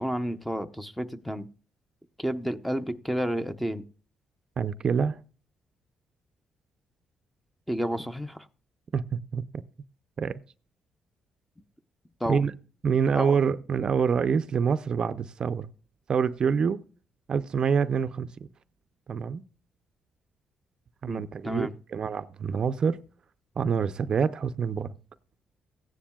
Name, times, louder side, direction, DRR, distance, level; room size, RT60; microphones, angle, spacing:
voice 1, 0.0-1.5 2.2-3.8 7.7-8.4 12.2-12.4 13.2-13.4 21.1-21.7, equal, 5° left, 10 dB, 0.7 m, -31 dB
voice 2, 4.6-5.2 8.9-9.6 10.2-10.4 12.3-12.5 12.8-15.7 16.1-16.8 17.3-18.3 19.1-19.4 21.0-23.0 23.6-25.0, right 6 dB, 40° right, 13 dB, 0.5 m, -26 dB
15.5 x 10.0 x 2.3 m, 0.37 s
cardioid pair, 130°, 2 cm